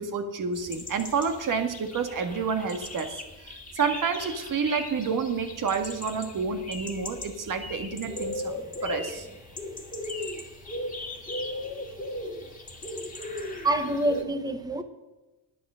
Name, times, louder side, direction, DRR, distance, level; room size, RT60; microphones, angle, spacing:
voice 1, 0.0-8.6 8.8-9.3, right 5 dB, 45° right, 1.8 m, -29 dB
sound 1, 0.5-14.2, left 1 dB, 20° left, 2.1 m, -38 dB
voice 2, 13.6-14.8, right 1 dB, 10° right, 1.2 m, -26 dB
11.0 x 9.0 x 6.3 m
cardioid pair, 95°, 44 cm